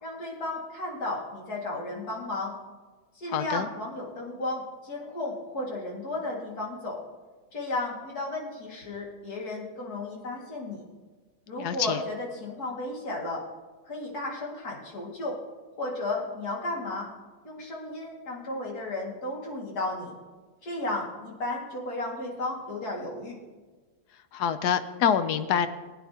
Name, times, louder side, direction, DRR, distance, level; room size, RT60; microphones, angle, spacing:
voice 1, 0.0-2.5 3.2-7.0 7.5-10.8 11.5-13.4 13.9-15.4 15.8-17.1 17.4-20.1 20.6-23.4, left 2 dB, 50° left, -2 dB, 2.6 m, -34 dB
voice 2, 3.3-3.7 11.6-12.0 24.3-25.7, left 8 dB, 70° left, 11 dB, 0.9 m, -26 dB
20.0 x 9.2 x 2.8 m, 1.4 s
omnidirectional pair, 2.2 m